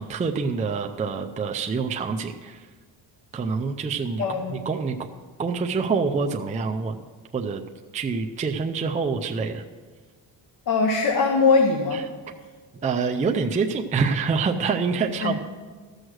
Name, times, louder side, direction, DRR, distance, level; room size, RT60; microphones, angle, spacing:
voice 1, 0.0-2.7 3.3-5.0 5.4-7.0 7.3-7.6 7.9-9.6 11.9-12.0 12.8-15.4, right 5 dB, 15° right, 3 dB, 0.4 m, -26 dB
voice 2, 4.2-4.6 10.7-12.0 15.2-15.4, left 4 dB, 45° left, 4 dB, 1.2 m, -21 dB
14.5 x 6.5 x 6.3 m, 1.5 s
cardioid pair, 135°, 44 cm